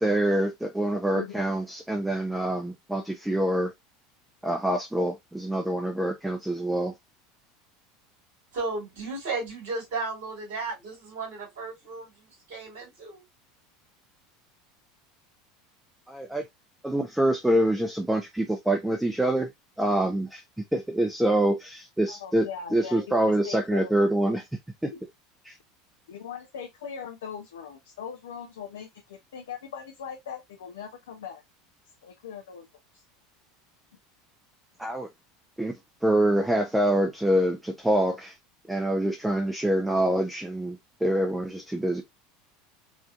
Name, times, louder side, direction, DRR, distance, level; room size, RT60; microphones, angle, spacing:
voice 1, 0.0-3.7 4.4-6.9 16.1-16.4 16.8-19.5 19.8-24.4 24.8-24.9 25.4-25.5 34.8-35.1 35.6-35.7 36.0-38.4 38.7-42.0, right 1 dB, 5° right, 0.7 m, -25 dB
voice 2, 8.5-13.2, right 3 dB, 60° right, 2.6 m, -34 dB
voice 3, 22.1-24.4 26.1-31.4 32.0-32.7 32.9-33.0, left 7 dB, 70° left, 0.5 m, -40 dB
4.8 x 2.7 x 2.4 m
figure-of-eight pair, 75°, 0 cm